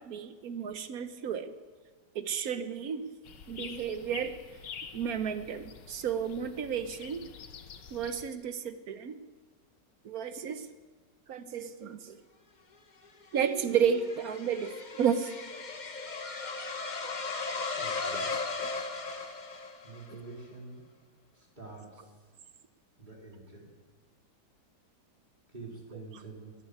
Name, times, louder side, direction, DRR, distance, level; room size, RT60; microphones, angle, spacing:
voice 1, 0.0-1.5 2.1-3.1 3.5-4.4 4.9-7.3 7.9-9.2 10.0-10.7 11.3-12.2 13.3-15.3 18.6-18.7, right 7 dB, 60° right, 10 dB, 1.2 m, -32 dB
sound 1, 3.2-8.3, left 7 dB, 75° left, 1.7 m, -47 dB
sound 2, 13.0-20.1, left 4 dB, 35° left, 0.9 m, -37 dB
voice 2, 17.8-18.3 19.8-20.8 21.3-22.1 23.0-23.7 25.5-26.6, right 3 dB, 25° right, -2 dB, 3.7 m, -46 dB
14.5 x 10.0 x 9.6 m, 1.4 s
omnidirectional pair, 1.9 m